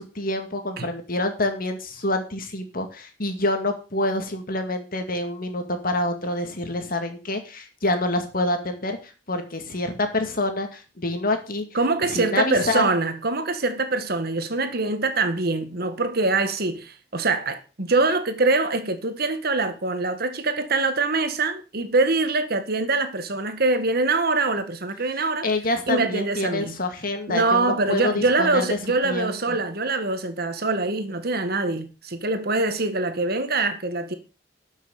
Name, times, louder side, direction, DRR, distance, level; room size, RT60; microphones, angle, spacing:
voice 1, 0.0-11.6 12.1-12.9 25.1-28.8 29.0-29.6, left 2 dB, 50° left, 2.3 m, -27 dB
voice 2, 11.7-25.5 25.9-26.7 27.3-34.1, right 3 dB, 55° right, 1.7 m, -24 dB
12.5 x 6.5 x 6.5 m
head